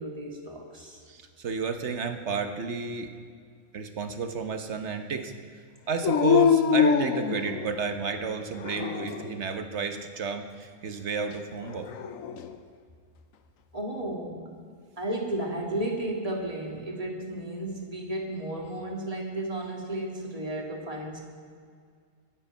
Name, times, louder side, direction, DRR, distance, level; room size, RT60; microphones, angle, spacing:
voice 1, 0.0-1.0 13.7-14.5 15.0-21.2, right 1 dB, 25° right, -1 dB, 2.3 m, -33 dB
voice 2, 1.1-3.1 3.7-5.3 5.9-11.9, right 5 dB, 60° right, 7 dB, 1.4 m, -31 dB
Dog, 6.0-7.9 8.6-9.4 11.6-12.5, left 7 dB, 80° left, 1.2 m, -24 dB
24.0 x 8.3 x 5.6 m, 2.1 s
omnidirectional pair, 1.4 m